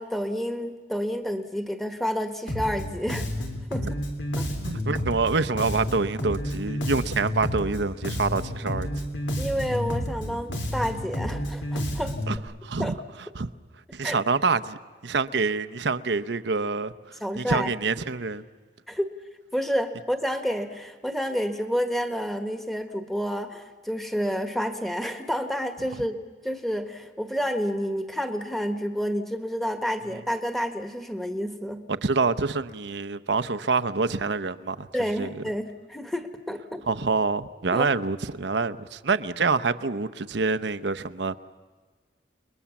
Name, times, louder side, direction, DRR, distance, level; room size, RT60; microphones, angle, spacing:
voice 1, 0.0-3.3 3.7-4.0 4.4-4.5 9.4-12.2 12.8-13.0 14.0-14.2 17.2-17.7 18.9-19.1 19.5-26.2 26.4-31.9 34.9-36.8 37.7-37.9, equal, ahead, 1.5 m, -29 dB
Bass guitar, 2.5-12.4, equal, 85° left, 3.3 m, -30 dB
voice 2, 4.6-8.9 12.3-12.4 12.6-12.9 13.3-13.5 13.9-14.8 15.0-18.4 31.9-34.9 35.2-35.4 36.9-41.4, right 4 dB, 75° right, 0.8 m, -26 dB
29.5 x 21.5 x 7.2 m
head